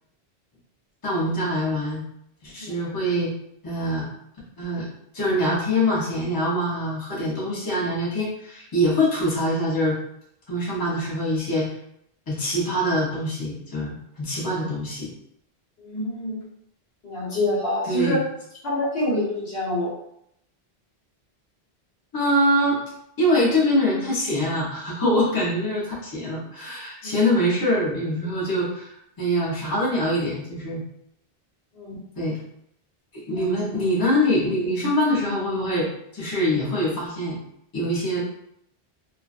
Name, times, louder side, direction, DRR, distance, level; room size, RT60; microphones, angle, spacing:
voice 1, 1.0-2.0 2.4-3.3 3.6-4.1 4.6-4.9 5.1-10.0 10.5-11.7 12.3-15.1 17.9-18.2 22.1-22.8 23.2-30.8 32.2-32.4 33.1-35.9 36.1-37.4 37.7-38.2, equal, 25° left, -7 dB, 0.7 m, -24 dB
voice 2, 15.8-16.4 17.0-18.2 18.6-19.9 27.0-27.1 31.7-32.0 33.3-33.5, left 1 dB, 70° left, -7 dB, 1.1 m, -26 dB
2.5 x 2.2 x 2.4 m, 0.75 s
omnidirectional pair, 1.1 m